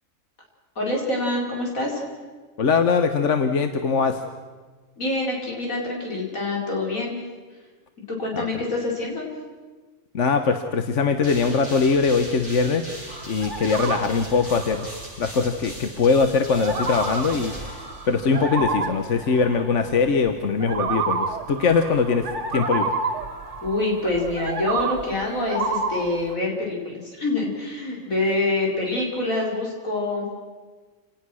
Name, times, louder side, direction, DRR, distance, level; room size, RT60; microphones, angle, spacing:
voice 1, 0.8-2.0 5.0-7.2 8.1-9.3 23.6-30.3, left 2 dB, 85° left, -2 dB, 5.3 m, -26 dB
voice 2, 2.6-4.2 8.4-8.5 10.1-12.8 13.3-14.9 15.2-22.3 22.5-22.9, left 5 dB, 65° left, 7 dB, 1.4 m, -21 dB
sound 1, 11.2-18.5, equal, 15° left, 7.7 m, -39 dB
sound 2, 13.1-15.0 15.4-15.7 16.2-20.3 20.6-26.3, right 4 dB, 60° right, 2.1 m, -30 dB
28.5 x 18.0 x 6.3 m, 1.4 s
omnidirectional pair, 1.4 m